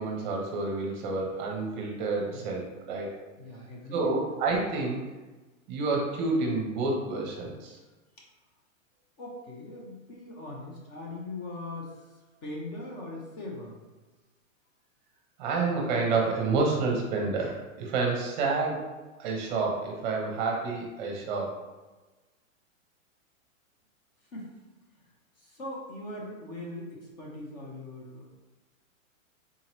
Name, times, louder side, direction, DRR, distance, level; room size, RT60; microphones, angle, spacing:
voice 1, 0.0-3.2 3.9-5.0 5.7-7.8 15.4-18.8 19.2-21.6, right 3 dB, 35° right, -1 dB, 0.7 m, -29 dB
voice 2, 3.4-4.3 9.2-12.0 12.4-13.8 24.3-24.5 25.4-28.3, left 2 dB, 30° left, -2 dB, 0.7 m, -40 dB
3.7 x 2.8 x 3.0 m, 1.2 s
hypercardioid pair, 150°, 40 cm